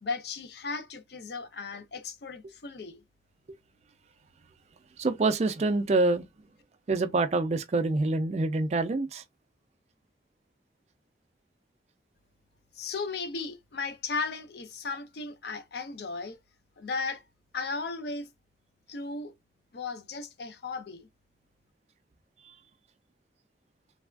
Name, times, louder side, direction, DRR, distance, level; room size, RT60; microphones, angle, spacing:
voice 1, 0.0-3.0 12.7-16.4 16.8-17.2 17.5-18.3 18.9-19.3 19.7-21.1, left 4 dB, 60° left, 0.5 m, -36 dB
voice 2, 5.0-6.2 6.9-9.2, right 3 dB, 35° right, 0.3 m, -26 dB
3.3 x 2.3 x 2.3 m
head